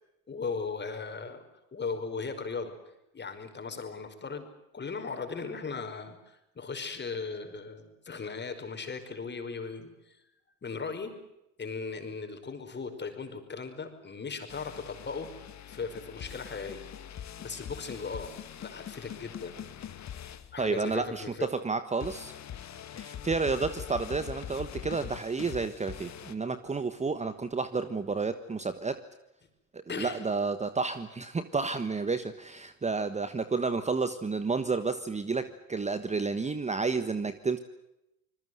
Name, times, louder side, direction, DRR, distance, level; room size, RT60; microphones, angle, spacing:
voice 1, 0.3-1.4 1.7-2.8 3.1-10.2 10.6-11.2 11.6-15.3 15.7-16.9 17.4-18.3 18.6-19.6 20.5-21.5 29.9-30.2, left 4 dB, 25° left, 6 dB, 5.3 m, -37 dB
sound 1, 14.5-21.2 22.0-26.3, left 9 dB, 40° left, 2.4 m, -43 dB
voice 2, 20.6-22.3 22.9-29.0 29.7-37.6, right 4 dB, 15° right, 11 dB, 1.4 m, -31 dB
27.0 x 21.0 x 7.9 m, 0.87 s
supercardioid pair, 95°, 40 cm